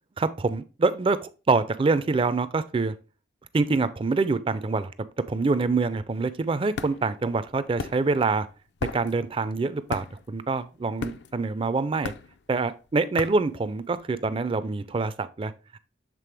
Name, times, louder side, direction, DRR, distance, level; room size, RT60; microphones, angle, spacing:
voice 1, 0.2-3.0 3.5-4.9 5.3-8.5 8.9-12.1 12.5-15.8, right 3 dB, 30° right, 14 dB, 0.4 m, -25 dB
sound 1, 6.2-14.3, left 4 dB, 65° left, 0.4 m, -38 dB
7.5 x 3.7 x 3.3 m, 0.33 s
head